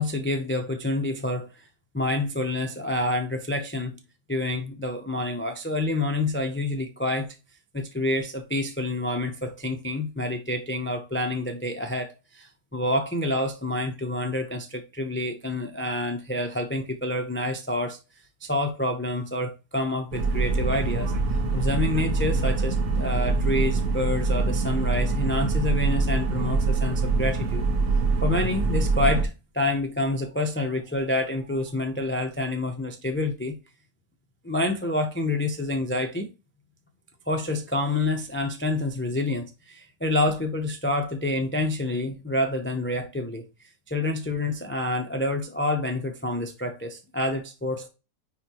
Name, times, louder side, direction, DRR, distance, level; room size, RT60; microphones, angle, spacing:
voice 1, 0.0-1.5 1.9-4.0 4.3-7.3 7.7-18.0 18.4-21.1 21.5-27.6 28.2-33.6 34.4-36.3 37.3-43.4 43.9-47.9, left 2 dB, 15° left, 0.4 m, -28 dB
sound 1, 20.1-29.2, right 3 dB, 60° right, 1.4 m, -24 dB
9.7 x 3.3 x 3.0 m
omnidirectional pair, 1.7 m